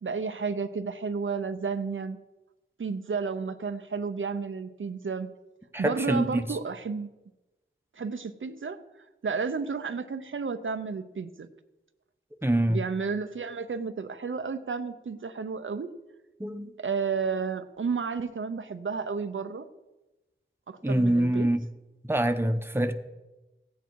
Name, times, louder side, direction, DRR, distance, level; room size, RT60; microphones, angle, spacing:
voice 1, 0.0-2.2 2.8-5.3 5.8-7.1 8.0-8.8 9.2-11.5 12.7-15.9 16.8-19.7 20.7-21.5, right 5 dB, 70° right, 9 dB, 0.7 m, -32 dB
voice 2, 5.7-6.6 12.4-12.8 16.4-16.7 20.8-21.6 22.1-22.9, right 1 dB, 10° right, 7 dB, 0.9 m, -25 dB
15.0 x 9.3 x 4.6 m, 1.1 s
wide cardioid pair, 60°, 21 cm